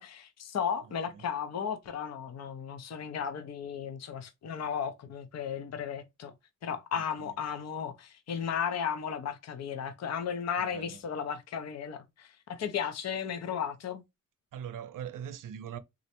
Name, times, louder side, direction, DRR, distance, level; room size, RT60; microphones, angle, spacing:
voice 1, 0.0-6.3 6.6-14.0, left 7 dB, 55° left, 0.6 m, -35 dB
voice 2, 10.6-11.0 14.5-15.8, right 9 dB, 75° right, 0.5 m, -41 dB
3.7 x 2.1 x 2.8 m
wide cardioid pair, 145°, 32 cm